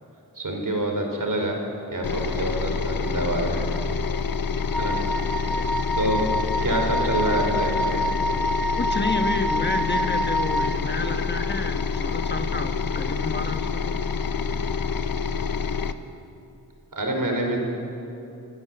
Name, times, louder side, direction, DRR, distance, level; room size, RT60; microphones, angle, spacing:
voice 1, 0.3-1.6 1.9-3.6 4.8-5.0 6.0-6.2 6.6-8.0 16.9-17.6, right 1 dB, 65° right, 2 dB, 4.7 m, -26 dB
sound 1, 2.0-15.9, left 5 dB, 75° left, 1.0 m, -27 dB
Wind instrument woodwind instrument, 4.7-10.8, equal, ahead, 1.5 m, -27 dB
voice 2, 5.5-5.8 8.7-14.0, left 2 dB, 30° left, 6 dB, 1.4 m, -30 dB
28.0 x 16.0 x 7.8 m, 2.8 s
wide cardioid pair, 70°, 35 cm